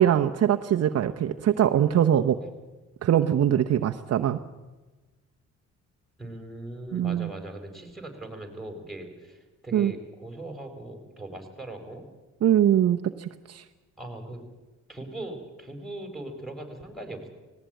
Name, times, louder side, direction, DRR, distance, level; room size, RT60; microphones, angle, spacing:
voice 1, 0.0-2.4 3.0-4.4 6.9-7.3 9.7-9.9 12.4-13.6, right 10 dB, 55° right, 6 dB, 0.9 m, -22 dB
voice 2, 6.2-12.0 14.0-14.4 14.9-17.3, right 1 dB, ahead, 5 dB, 4.7 m, -40 dB
18.5 x 18.0 x 9.1 m, 1.2 s
cardioid pair, 95°, 30 cm